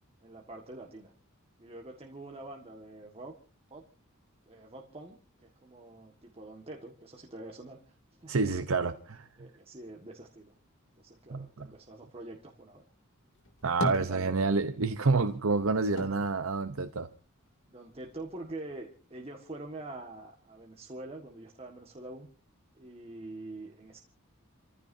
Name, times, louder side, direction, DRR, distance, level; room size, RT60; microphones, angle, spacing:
voice 1, 0.2-1.1 1.6-3.3 3.7-3.8 4.4-8.3 9.4-10.5 11.0-12.8 14.0-14.4 17.7-22.3 22.7-24.0, right 2 dB, 30° right, 1.7 m, -45 dB
voice 2, 8.3-9.3 11.3-11.7 13.6-17.1, right 4 dB, 75° right, 0.8 m, -28 dB
sound 1, 13.3-14.8 15.2-17.5 17.9-18.8, left 1 dB, 70° left, 2.6 m, -39 dB
29.0 x 15.5 x 2.7 m
head